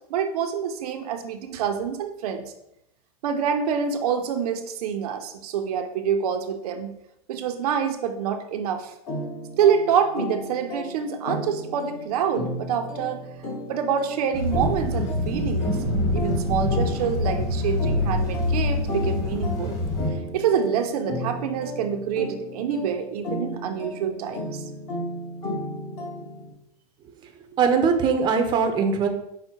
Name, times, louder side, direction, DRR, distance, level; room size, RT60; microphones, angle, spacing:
voice 1, 0.1-2.5 3.2-6.9 7.3-8.9 9.6-13.2 13.7-15.8 16.1-19.8 20.3-24.7, right 7 dB, 80° right, 7 dB, 0.6 m, -26 dB
sound 1, 9.1-26.5, equal, 40° left, 1.2 m, -34 dB
sound 2, 14.3-20.1, left 2 dB, 20° left, 1.3 m, -25 dB
voice 2, 27.5-29.1, right 5 dB, 25° right, 5 dB, 0.5 m, -21 dB
5.6 x 2.1 x 4.4 m, 0.81 s
supercardioid pair, 145°, 19 cm